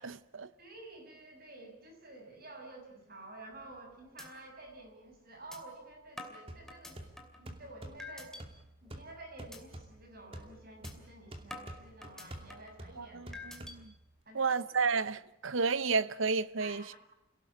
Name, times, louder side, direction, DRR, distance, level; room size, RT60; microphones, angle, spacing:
voice 1, 0.0-0.5 13.0-13.3 13.6-13.9 14.3-16.8, right 4 dB, 75° right, 0.9 m, -31 dB
voice 2, 0.6-7.0 7.3-8.4 8.8-13.4 14.2-15.0 16.6-17.0, right 2 dB, 45° right, 6.9 m, -51 dB
sound 1, 3.5-3.8 4.2-4.3 4.7-4.8 5.5-5.6 6.2-7.4 8.0-8.4 8.9-9.1 9.5-9.6 10.0-10.2 10.8-10.9 11.5-12.8 13.3-13.8, left 2 dB, ahead, 2.7 m, -47 dB
sound 2, 6.5-14.2, right 1 dB, 25° right, 2.6 m, -50 dB
28.0 x 18.0 x 8.7 m
head